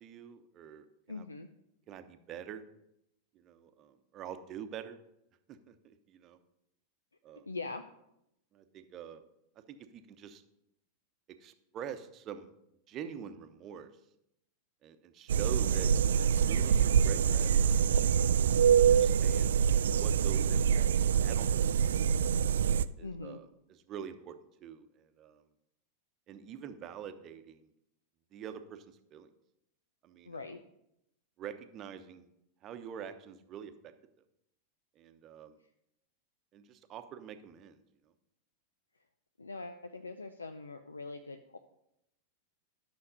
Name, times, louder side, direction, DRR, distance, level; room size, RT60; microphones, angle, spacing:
voice 1, 0.0-1.3 1.9-2.6 3.3-5.0 5.5-6.4 7.2-7.5 8.5-9.2 9.7-10.4 11.4-12.5 12.9-13.9 14.8-17.7 18.7-19.6 20.0-22.1 23.0-25.4 26.3-27.6 28.3-29.3 30.0-30.5 31.4-32.3 32.6-33.9 35.0-35.6 36.5-37.8, right 8 dB, 35° right, 9 dB, 0.9 m, -46 dB
voice 2, 1.1-1.5 7.5-7.8 23.0-23.4 30.3-30.6 39.4-41.6, left 3 dB, 80° left, 8 dB, 0.5 m, -42 dB
sound 1, 15.3-22.8, right 7 dB, 65° right, 0.3 m, -25 dB
12.0 x 6.3 x 5.4 m, 0.81 s
figure-of-eight pair, 90°, 0 cm